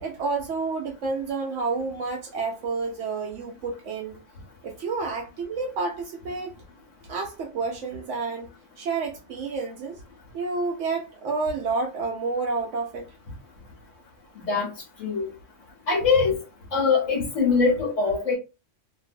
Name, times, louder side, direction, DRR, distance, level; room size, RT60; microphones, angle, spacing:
voice 1, 0.0-4.2 4.6-6.5 7.1-8.5 8.8-10.0 10.3-13.1, right 4 dB, 75° right, 0.9 m, -29 dB
voice 2, 15.9-16.4 16.7-18.3, left 4 dB, 80° left, 1.3 m, -22 dB
2.9 x 2.7 x 2.5 m
omnidirectional pair, 1.3 m